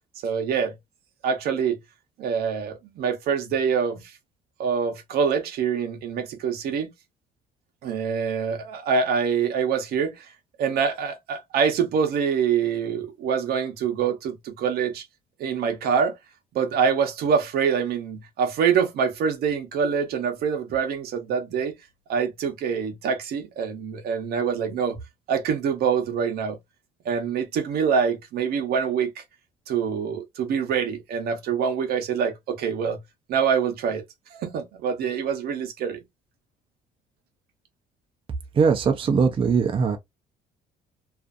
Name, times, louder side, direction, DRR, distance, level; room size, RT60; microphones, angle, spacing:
voice 1, 0.2-0.7 1.2-1.8 2.2-4.1 4.6-6.9 7.8-10.3 10.6-15.0 15.4-16.1 16.5-21.8 22.1-25.0 25.3-26.6 27.0-29.2 29.7-33.0 33.3-34.0 34.3-36.0, right 6 dB, 65° right, 0.7 m, -25 dB
voice 2, 38.6-40.0, right 5 dB, 30° right, 0.5 m, -20 dB
2.4 x 2.4 x 2.4 m
cardioid pair, 110°, 17 cm